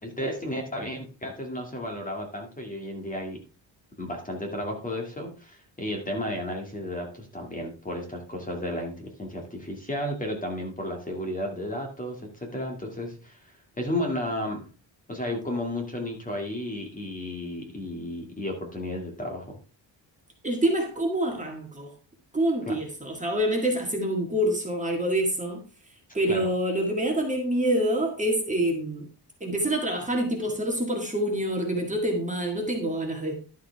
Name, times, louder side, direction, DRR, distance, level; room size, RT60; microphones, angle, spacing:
voice 1, 0.0-3.4 4.0-13.4 13.8-14.6 15.1-19.5 22.7-22.8 26.3-26.5, left 1 dB, 20° left, 2.2 m, -33 dB
voice 2, 20.4-21.9 22.3-25.6 26.1-29.1 29.4-33.3, right 1 dB, 15° right, 2.0 m, -26 dB
11.5 x 7.6 x 3.5 m
wide cardioid pair, 180°, 45 cm